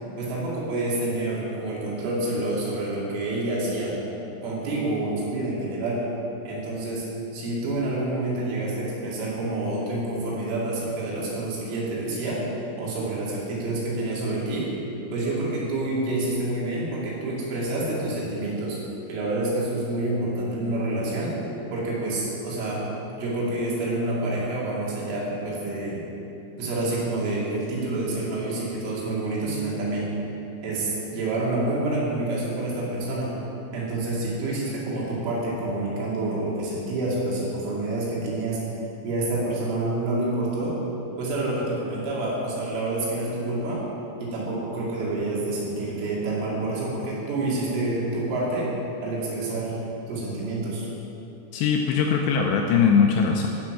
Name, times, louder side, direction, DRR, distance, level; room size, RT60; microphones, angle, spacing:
voice 1, 0.2-4.0 4.4-6.1 6.4-12.5 12.8-14.7 15.1-18.8 19.1-21.4 21.7-22.9 23.2-26.0 26.6-30.2 30.6-33.4 33.7-38.6 39.0-40.8 41.2-43.9 44.2-48.7 49.0-49.8 50.1-50.9, right 2 dB, 80° right, -5 dB, 4.9 m, -28 dB
voice 2, 51.5-53.5, left 6 dB, 90° left, 1 dB, 2.5 m, -20 dB
15.0 x 6.3 x 6.0 m, 3.0 s
omnidirectional pair, 5.6 m